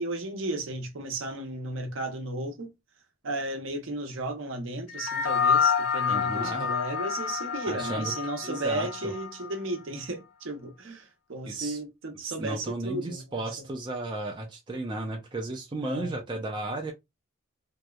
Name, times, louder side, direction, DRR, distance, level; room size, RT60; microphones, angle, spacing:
voice 1, 0.0-2.7 3.2-13.4 15.8-16.1, right 2 dB, 65° right, 0.7 m, -34 dB
sound 1, 4.9-9.6, left 7 dB, 75° left, 0.3 m, -28 dB
voice 2, 6.1-6.7 7.7-8.1 8.4-9.1 11.4-11.8 12.2-16.9, right 2 dB, 20° right, 0.4 m, -34 dB
2.7 x 2.1 x 2.2 m
head